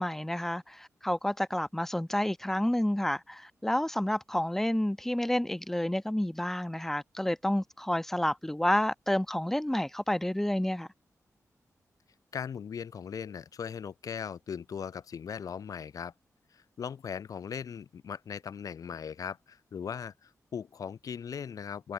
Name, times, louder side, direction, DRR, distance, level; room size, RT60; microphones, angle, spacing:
voice 1, 0.0-10.9, left 1 dB, 5° left, 1.6 m, -29 dB
voice 2, 12.3-16.1 16.5-21.9, left 7 dB, 85° left, 5.5 m, -39 dB
wide cardioid pair, 150°, 6 cm